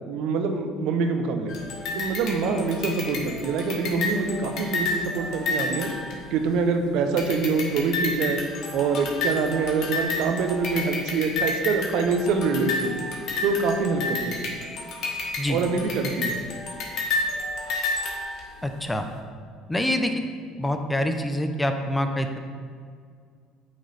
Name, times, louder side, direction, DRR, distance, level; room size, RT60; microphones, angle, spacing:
voice 1, 0.1-1.5 1.9-5.9 6.3-8.4 8.7-13.0 13.4-14.6 15.5-16.4, right 4 dB, 70° right, 6 dB, 0.6 m, -25 dB
sound 1, 1.5-6.7 7.2-18.7, left 2 dB, 55° left, 1.2 m, -31 dB
voice 2, 18.6-19.1 19.7-20.1 20.6-22.4, left 1 dB, 10° left, 6 dB, 0.6 m, -25 dB
8.4 x 3.1 x 4.0 m, 2.1 s
hypercardioid pair, 75°, 0 cm